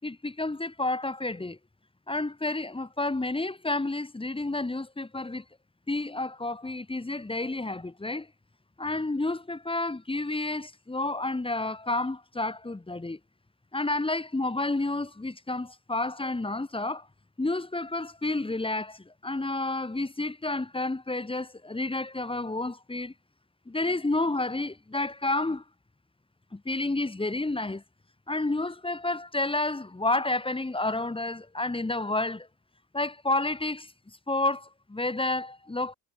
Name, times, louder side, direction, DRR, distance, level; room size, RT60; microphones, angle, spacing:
voice 1, 0.0-1.6 2.1-5.4 5.9-8.3 8.8-13.2 13.7-17.1 17.4-23.1 23.7-25.6 26.5-27.8 28.3-32.5 32.9-33.9 34.3-35.9, left 2 dB, 10° left, 5.4 m, -30 dB
cardioid pair, 165°, 46 cm